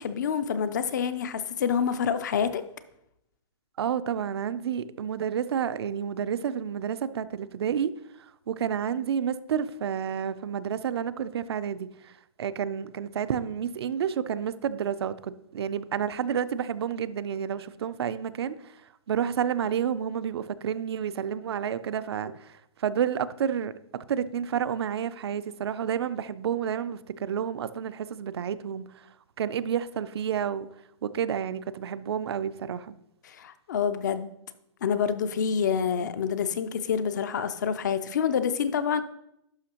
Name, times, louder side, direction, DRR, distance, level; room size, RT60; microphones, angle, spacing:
voice 1, 0.0-2.6 33.2-34.3 34.8-39.0, left 7 dB, 35° left, 0.4 m, -27 dB
voice 2, 3.8-7.9 8.2-12.1 12.4-18.8 19.1-29.1 29.4-30.7 31.0-32.9, right 8 dB, 55° right, 0.4 m, -30 dB
11.5 x 5.6 x 2.9 m
hypercardioid pair, 170°, 17 cm